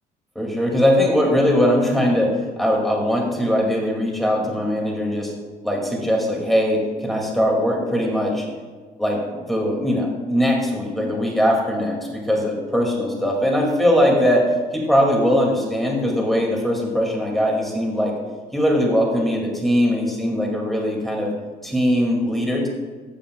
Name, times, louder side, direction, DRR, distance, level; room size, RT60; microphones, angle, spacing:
voice 1, 0.4-5.3 5.6-8.5 9.0-12.0 12.3-14.4 14.7-18.1 18.5-21.3 21.6-22.7, equal, ahead, -2 dB, 2.2 m, -20 dB
14.0 x 8.6 x 2.3 m, 1.5 s
cardioid pair, 135°, 17 cm